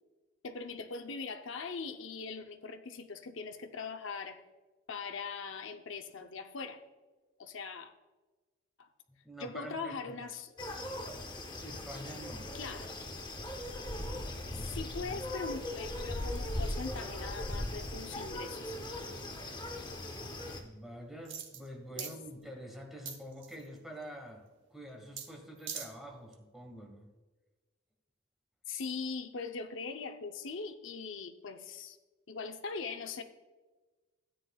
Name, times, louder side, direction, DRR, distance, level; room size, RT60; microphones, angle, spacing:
voice 1, 0.4-4.4 4.9-6.8 7.4-7.9 8.8-8.9 9.4-10.5 12.5-12.9 14.5-18.8 21.9-22.1 28.7-32.0 32.3-33.2, left 4 dB, 60° left, 6 dB, 0.7 m, -41 dB
voice 2, 9.2-10.1 11.6-12.5 14.5-15.2 20.6-27.1, equal, ahead, 2 dB, 1.2 m, -47 dB
sound 1, 10.6-20.6, left 1 dB, 20° left, 0.8 m, -39 dB
sound 2, 21.2-21.7 22.0-22.2 23.1-23.7 25.2-25.3 25.6-25.9 26.3-26.4, right 8 dB, 60° right, 0.9 m, -41 dB
13.0 x 9.2 x 2.3 m, 1.3 s
head